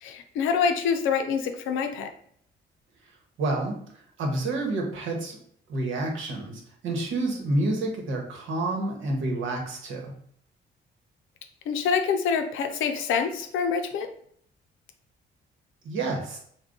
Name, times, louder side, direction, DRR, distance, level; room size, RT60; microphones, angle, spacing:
voice 1, 0.0-2.1 11.7-14.1, left 6 dB, 85° left, 6 dB, 0.5 m, -26 dB
voice 2, 3.4-3.7 4.2-5.4 5.7-10.1 15.8-16.4, right 2 dB, 80° right, 1 dB, 1.0 m, -29 dB
3.7 x 2.2 x 3.6 m, 0.64 s
cardioid pair, 90°, 20 cm